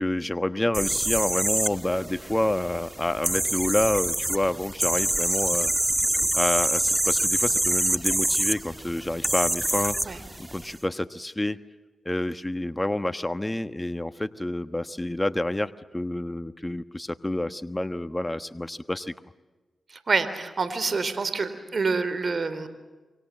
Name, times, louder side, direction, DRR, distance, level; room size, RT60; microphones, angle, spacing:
voice 1, 0.0-5.7 6.3-9.9 10.5-11.6 12.0-19.1, left 1 dB, 15° left, 12 dB, 1.3 m, -28 dB
sound 1, 0.7-10.7, right 1 dB, 15° right, 1.7 m, -26 dB
voice 2, 19.9-22.7, right 4 dB, 55° right, 12 dB, 3.8 m, -27 dB
29.5 x 24.5 x 7.5 m, 1.2 s
cardioid pair, 45°, 0 cm